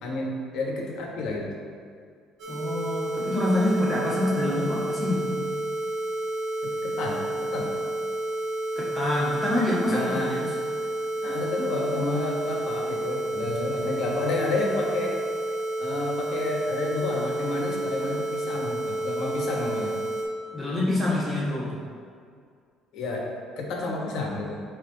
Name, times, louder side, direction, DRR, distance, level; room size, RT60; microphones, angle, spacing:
voice 1, 0.0-1.5 6.6-7.7 9.9-10.4 11.2-15.1 15.8-19.9 22.9-23.3 23.6-24.6, left 2 dB, 70° left, -1 dB, 1.2 m, -30 dB
sound 1, 2.4-20.2, right 1 dB, 65° right, 1.2 m, -30 dB
voice 2, 2.5-5.4 8.8-10.5 20.5-21.7, left 1 dB, 5° left, -8 dB, 1.3 m, -26 dB
9.1 x 3.1 x 3.9 m, 2.2 s
cardioid pair, 130°, 0 cm